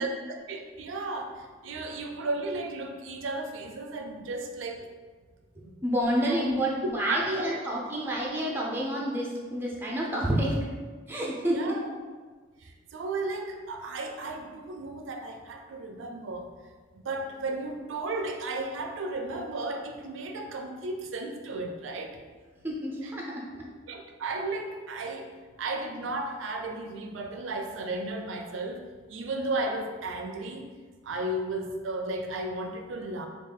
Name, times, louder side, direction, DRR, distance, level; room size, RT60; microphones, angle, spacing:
voice 1, 0.0-4.8 5.6-5.7 6.2-6.5 7.0-7.6 11.5-11.9 12.6-16.5 16.9-22.2 23.9-25.3 25.6-28.8 29.1-30.7 31.0-33.3, right 2 dB, 80° right, 4 dB, 0.4 m, -34 dB
voice 2, 5.8-10.6 11.1-11.7 22.6-23.7, equal, 10° right, -3 dB, 0.5 m, -29 dB
3.6 x 2.4 x 3.5 m, 1.4 s
head